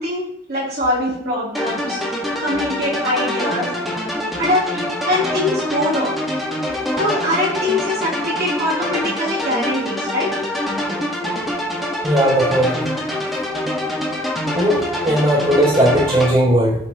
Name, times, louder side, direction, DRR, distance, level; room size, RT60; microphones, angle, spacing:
voice 1, 0.0-2.0 2.4-3.7 4.3-4.6 5.0-6.1 7.0-10.3, left 1 dB, 55° right, -6 dB, 3.7 m, -22 dB
sound 1, 1.5-16.3, left 1 dB, ahead, 1.7 m, -25 dB
voice 2, 12.0-12.7 14.5-16.8, equal, 30° right, -8 dB, 3.6 m, -16 dB
17.0 x 6.0 x 3.1 m, 0.75 s
head